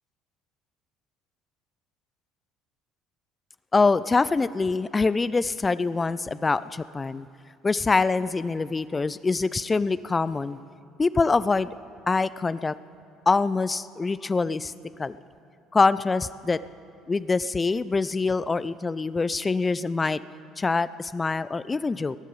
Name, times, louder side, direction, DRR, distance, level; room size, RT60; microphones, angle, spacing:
voice 1, 3.7-7.3 7.6-10.6 11.0-11.7 12.1-12.8 13.3-14.7 15.0-15.2 15.7-16.6 17.1-20.2 20.6-22.2, left 4 dB, 20° left, 17 dB, 0.3 m, -24 dB
21.0 x 11.0 x 5.4 m, 2.5 s
figure-of-eight pair, 55°, 0 cm